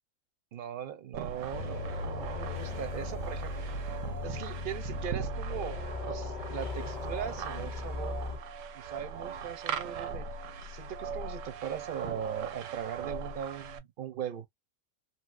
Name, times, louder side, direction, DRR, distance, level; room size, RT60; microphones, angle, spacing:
voice 1, 0.5-8.2 8.7-10.3 10.6-14.5, right 9 dB, 55° right, 0.6 m, -40 dB
sound 1, 1.1-13.8, right 6 dB, 85° right, 1.0 m, -40 dB
sound 2, 1.5-8.4, left 2 dB, 45° left, 0.6 m, -37 dB
3.0 x 2.7 x 2.4 m
omnidirectional pair, 1.3 m